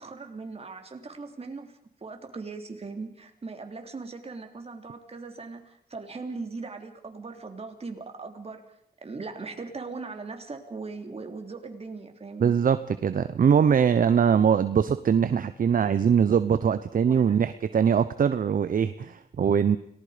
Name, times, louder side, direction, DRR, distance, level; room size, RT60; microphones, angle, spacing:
voice 1, 0.0-8.6 9.0-12.6 17.0-17.5, right 4 dB, 40° right, 4 dB, 3.3 m, -39 dB
voice 2, 12.4-19.8, right 7 dB, 55° right, 12 dB, 0.8 m, -22 dB
29.5 x 19.0 x 5.1 m, 0.66 s
wide cardioid pair, 105°, 17 cm